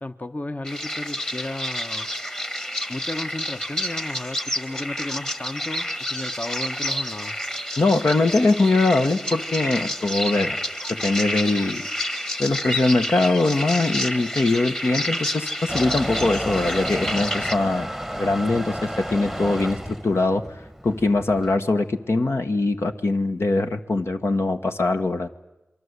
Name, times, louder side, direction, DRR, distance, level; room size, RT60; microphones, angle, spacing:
voice 1, 0.0-2.1 2.9-7.4, left 2 dB, 35° left, 8 dB, 1.1 m, -34 dB
sound 1, 0.6-17.6, left 1 dB, 15° left, 1.6 m, -29 dB
voice 2, 7.8-10.6 10.9-11.8 12.4-20.4 20.8-25.3, left 2 dB, 70° left, 6 dB, 1.4 m, -22 dB
Motor vehicle (road) / Engine starting / Accelerating revving vroom, 15.7-21.6, equal, ahead, 1.1 m, -32 dB
27.5 x 23.0 x 8.2 m, 1.0 s
cardioid pair, 45°, 5 cm